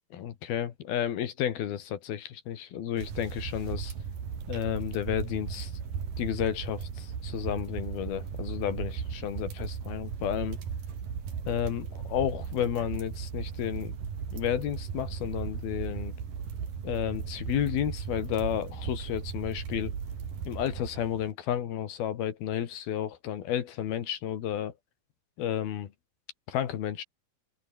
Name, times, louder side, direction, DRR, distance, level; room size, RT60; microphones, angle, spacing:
voice 1, 0.1-3.9 4.5-5.7 6.2-10.6 11.5-13.9 14.3-16.1 16.8-20.0 20.5-24.7 25.4-25.9 26.5-27.0, left 10 dB, 75° left, 3.8 m, -32 dB
sound 1, 3.0-21.3, right 7 dB, 60° right, 5.0 m, -37 dB
omnidirectional pair, 4.4 m